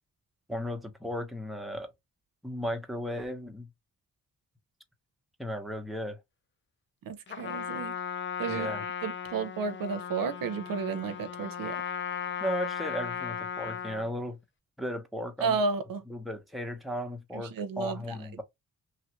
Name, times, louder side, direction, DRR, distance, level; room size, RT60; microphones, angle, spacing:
voice 1, 0.5-1.9 2.4-3.7 5.4-6.2 8.5-8.9 12.4-14.4 14.8-15.6 16.1-18.4, equal, ahead, 0.9 m, -35 dB
voice 2, 7.1-8.0 8.4-8.7 9.0-11.8 15.4-16.0 17.3-18.0, right 5 dB, 75° right, 0.6 m, -32 dB
Trumpet, 7.3-14.1, left 8 dB, 35° left, 0.4 m, -36 dB
3.0 x 2.4 x 2.9 m
cardioid pair, 60°, 34 cm